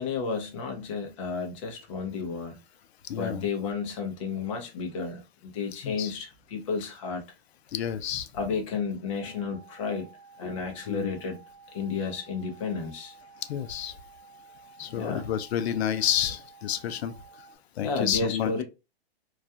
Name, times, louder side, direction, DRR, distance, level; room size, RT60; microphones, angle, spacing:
voice 1, 0.0-2.6 3.1-7.2 8.3-10.1 10.4-11.4 11.7-13.1 14.9-15.2 17.8-18.6, left 5 dB, 30° left, 0.5 m, -32 dB
voice 2, 3.1-3.5 5.8-6.1 7.7-8.3 10.9-11.1 13.5-13.9 14.8-17.1 17.8-18.6, left 10 dB, 80° left, 0.5 m, -29 dB
sound 1, 9.2-17.6, right 5 dB, 45° right, 0.8 m, -53 dB
2.3 x 2.2 x 2.6 m
hypercardioid pair, 170°, 31 cm